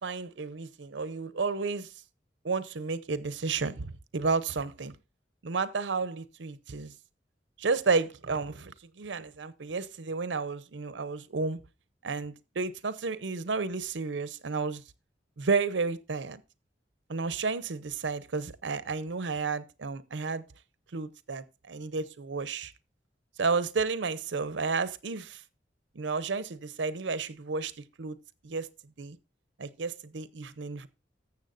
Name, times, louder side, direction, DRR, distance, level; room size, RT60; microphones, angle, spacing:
voice 1, 0.0-1.9 2.4-4.9 5.4-6.9 7.6-11.6 12.0-14.8 15.4-16.4 17.1-20.4 20.9-22.7 23.4-25.4 25.9-27.7 28.0-28.2 28.4-28.7 29.0-29.2 29.6-30.9, right 4 dB, 85° right, 0.7 m, -32 dB
14.0 x 7.1 x 2.5 m
head